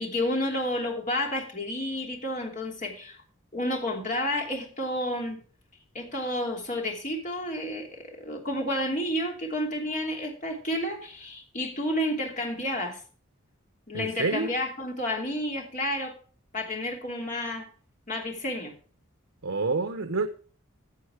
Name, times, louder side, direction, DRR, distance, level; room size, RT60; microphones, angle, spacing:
voice 1, 0.0-3.2 3.5-5.4 5.9-13.0 13.9-16.1 16.5-17.7 18.1-18.7, left 1 dB, 35° left, 2.9 m, -30 dB
voice 2, 13.9-14.5 19.4-20.3, right 3 dB, 75° right, 0.8 m, -28 dB
14.5 x 7.4 x 4.8 m
head